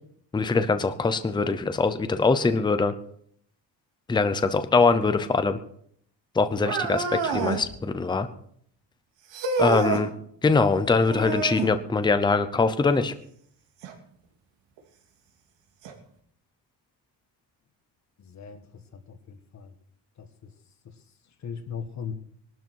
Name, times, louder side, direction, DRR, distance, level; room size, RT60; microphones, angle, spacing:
voice 1, 0.3-2.9 4.1-5.6 6.3-8.3 9.6-10.1 10.4-13.1, left 4 dB, 10° left, 10 dB, 0.7 m, -23 dB
sound 1, 6.6-7.7 9.3-10.1 11.1-11.8 13.8-13.9 14.8-14.9 15.8-15.9, right 5 dB, 85° right, 3.0 m, -27 dB
voice 2, 18.2-18.6 18.9-19.7 20.2-20.3 21.4-22.1, left 7 dB, 40° left, 8 dB, 1.5 m, -38 dB
20.5 x 12.5 x 4.7 m, 0.65 s
cardioid pair, 175°, 43 cm